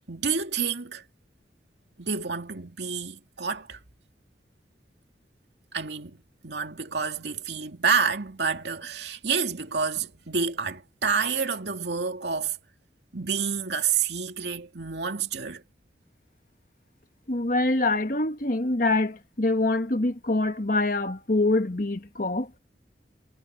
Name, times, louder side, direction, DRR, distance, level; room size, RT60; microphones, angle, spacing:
voice 1, 0.1-1.0 2.0-3.8 5.7-12.6 13.1-15.6, right 5 dB, 75° right, 2.5 m, -29 dB
voice 2, 17.3-22.5, left 2 dB, 50° left, 1.5 m, -25 dB
head